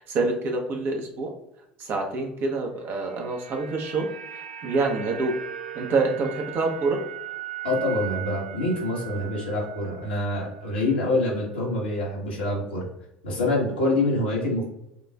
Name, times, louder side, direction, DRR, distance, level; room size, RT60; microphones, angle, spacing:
voice 1, 0.0-1.3 1.8-4.1 4.3-5.3 5.7-7.0, right 3 dB, 45° right, 2 dB, 0.9 m, -26 dB
sound 1, 2.8-11.1 11.4-11.5, right 11 dB, 75° right, 0.4 m, -39 dB
voice 2, 7.6-12.9 13.2-14.6, left 2 dB, 80° left, -4 dB, 1.4 m, -26 dB
6.5 x 2.5 x 2.4 m, 0.83 s
figure-of-eight pair, 70°, 5 cm